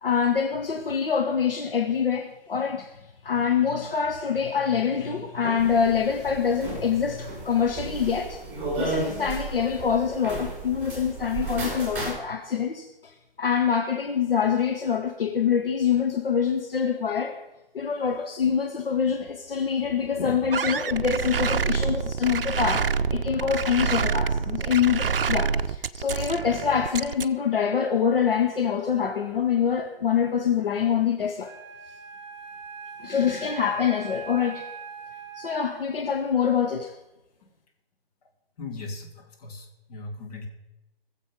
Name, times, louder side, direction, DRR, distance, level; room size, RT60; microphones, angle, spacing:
voice 1, 0.0-2.9 3.2-8.4 8.8-13.1 13.4-17.4 17.7-31.5 33.0-34.7 35.3-36.9, left 7 dB, 65° left, 3 dB, 1.3 m, -25 dB
sound 1, 5.6-12.1, right 3 dB, 5° right, 4.9 m, -34 dB
sound 2, 20.5-27.3, right 6 dB, 65° right, 0.6 m, -27 dB
Wind instrument woodwind instrument, 31.4-36.0, right 5 dB, 30° right, 3.4 m, -41 dB
voice 2, 38.6-40.5, left 3 dB, 40° left, 1 dB, 2.7 m, -38 dB
20.5 x 7.5 x 5.2 m, 0.94 s
figure-of-eight pair, 130°, 30 cm